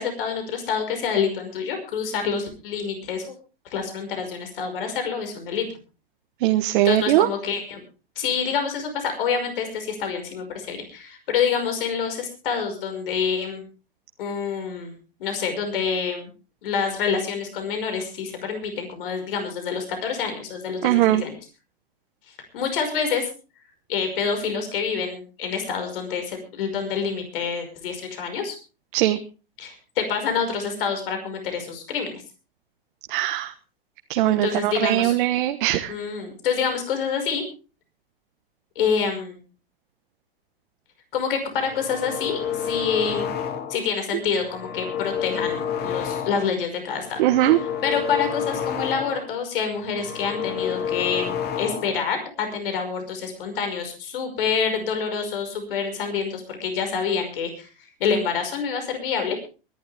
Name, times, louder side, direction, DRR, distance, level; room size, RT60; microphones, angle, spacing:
voice 1, 0.0-3.3 3.7-5.7 6.8-7.8 8.2-13.6 14.2-14.9 15.2-16.3 16.6-21.4 22.3-23.3 23.9-28.6 29.6-32.2 34.2-35.2 35.9-37.4 38.8-39.4 41.1-43.3 43.7-59.4, left 6 dB, 65° left, 6 dB, 5.6 m, -27 dB
voice 2, 6.4-7.3 20.8-21.2 28.9-29.2 33.1-33.5 34.1-35.9 47.2-47.6, right 15 dB, 60° right, 6 dB, 1.4 m, -20 dB
sound 1, 41.5-43.9 44.3-46.6 47.0-49.4 49.7-52.1, left 8 dB, 35° left, 2.4 m, -30 dB
23.5 x 12.0 x 3.5 m, 0.34 s
hypercardioid pair, 110°, 30 cm